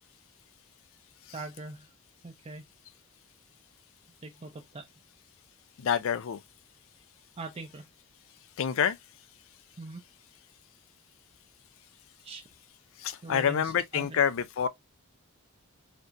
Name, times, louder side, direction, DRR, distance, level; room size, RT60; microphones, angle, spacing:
voice 1, 1.3-1.9 2.2-2.7 4.2-4.9 7.4-7.9 9.8-10.0 12.2-12.4 13.2-14.2, right 3 dB, 30° right, 0.5 m, -41 dB
voice 2, 5.8-6.4 8.6-9.0 13.0-14.7, left 8 dB, 65° left, 0.4 m, -27 dB
4.4 x 2.6 x 2.4 m
head